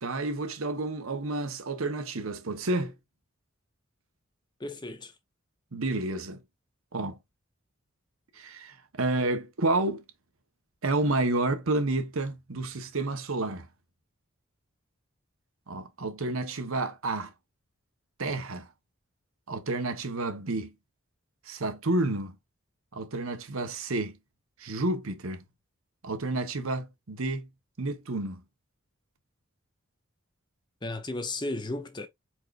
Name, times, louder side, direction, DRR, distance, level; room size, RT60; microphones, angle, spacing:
voice 1, 0.0-2.9 5.7-6.4 6.9-7.2 8.4-10.0 10.8-13.7 15.7-17.3 18.2-18.7 19.5-20.7 21.5-22.3 22.9-24.1 24.6-25.4 26.0-27.5 27.8-28.4, right 2 dB, 80° right, 1.0 m, -30 dB
voice 2, 4.6-5.1 30.8-32.1, left 2 dB, 20° left, 0.7 m, -34 dB
4.6 x 4.5 x 2.5 m
head